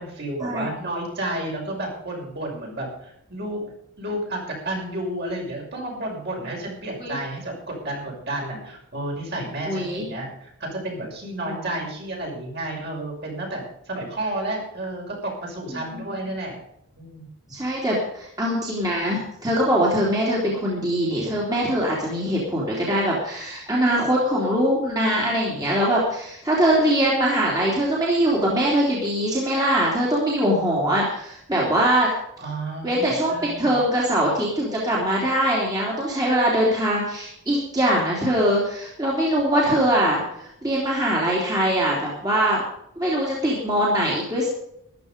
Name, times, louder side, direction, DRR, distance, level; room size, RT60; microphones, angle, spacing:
voice 1, 0.0-3.7 4.0-4.4 4.6-16.6 16.9-17.3 32.4-33.8, right 1 dB, 45° right, -2 dB, 6.1 m, -31 dB
voice 2, 9.7-10.0 11.5-11.6 15.8-16.0 17.5-32.1 32.8-42.6 43.0-44.5, right 1 dB, 15° right, -4 dB, 3.1 m, -22 dB
14.0 x 12.0 x 5.2 m, 0.75 s
head